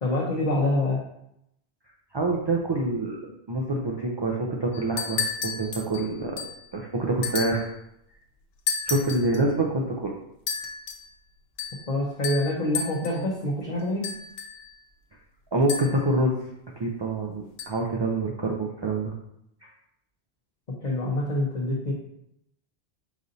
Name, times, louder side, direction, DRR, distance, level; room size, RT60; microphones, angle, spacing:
voice 1, 0.0-1.0 11.9-14.1 20.8-21.9, left 1 dB, 45° left, -4 dB, 0.8 m, -26 dB
voice 2, 2.1-6.4 6.7-7.7 8.9-10.1 15.5-16.3 16.8-19.1 19.6-19.7, right 2 dB, 45° right, -1 dB, 0.3 m, -26 dB
sound 1, 4.7-6.7 7.2-7.7 8.7-9.4 10.5-11.1 11.6-11.9 12.2-13.2 14.0-14.7 15.7-16.2 17.6-17.7, left 6 dB, 70° left, 0.9 m, -32 dB
5.0 x 2.7 x 3.9 m, 0.79 s
omnidirectional pair, 1.1 m